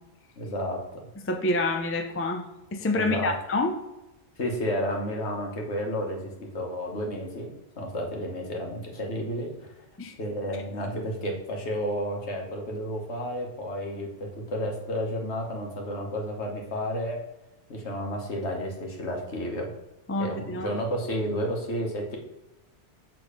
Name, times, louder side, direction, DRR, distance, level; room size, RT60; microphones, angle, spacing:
voice 1, 0.3-1.1 2.9-3.3 4.4-9.7 10.2-17.2 17.7-19.7 20.2-22.2, equal, 65° left, 1 dB, 1.6 m, -31 dB
voice 2, 1.2-2.4 2.7-3.7 10.0-10.1 20.1-20.7, left 2 dB, 15° left, 5 dB, 0.4 m, -27 dB
6.6 x 3.8 x 5.0 m, 0.97 s
omnidirectional pair, 1.2 m